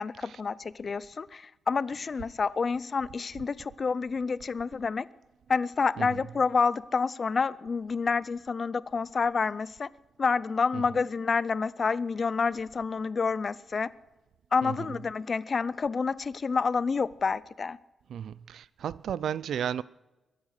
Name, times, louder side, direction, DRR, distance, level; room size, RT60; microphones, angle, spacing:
voice 1, 0.0-5.1 5.5-9.9 10.2-13.9 14.5-17.8, left 5 dB, 35° left, 0.4 m, -28 dB
voice 2, 18.1-19.8, right 9 dB, 85° right, 0.4 m, -33 dB
22.0 x 10.0 x 6.5 m
wide cardioid pair, 150°, 0 cm